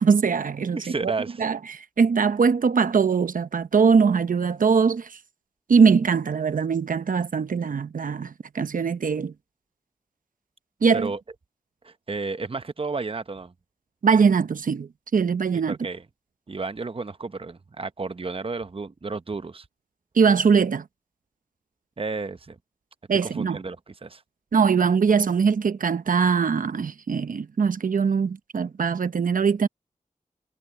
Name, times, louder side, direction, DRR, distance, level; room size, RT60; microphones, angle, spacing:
voice 1, 0.0-1.1 1.4-5.1 5.7-9.3 10.8-11.1 14.0-15.8 20.1-20.8 23.1-23.6 24.5-29.7, right 5 dB, 80° right, 0.9 m, -21 dB
voice 2, 0.7-1.4 10.9-11.2 11.8-13.5 15.7-16.0 16.5-19.6 22.0-22.6 23.2-24.2, right 3 dB, 40° right, 0.9 m, -32 dB
cardioid pair, 45°, 14 cm